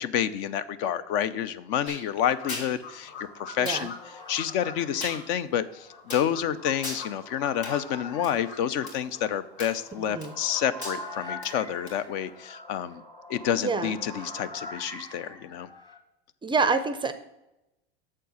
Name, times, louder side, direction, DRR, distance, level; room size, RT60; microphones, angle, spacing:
voice 1, 0.0-3.9 4.3-13.0 13.3-15.7, left 9 dB, 55° left, 14 dB, 0.6 m, -29 dB
sound 1, 1.9-2.0 2.5-2.7 3.7-3.8 5.0-5.2 6.1-6.3 6.8-7.0 7.6-7.8 8.2-8.3 8.9-9.0 9.6-9.9 10.2-10.5 10.8-11.0 11.4-11.5 11.9-12.0, left 2 dB, 85° left, 3.3 m, -37 dB
sound 2, 2.2-4.7 5.1-5.2 5.9-7.8 8.1-9.7 10.1-10.9, left 5 dB, 35° left, 1.9 m, -44 dB
sound 3, 2.8-16.0, left 1 dB, 15° left, 1.0 m, -45 dB
voice 2, 13.6-14.0 16.4-17.1, right 4 dB, 15° right, 11 dB, 0.4 m, -26 dB
7.3 x 4.5 x 6.2 m, 0.93 s
hypercardioid pair, 95°, 32 cm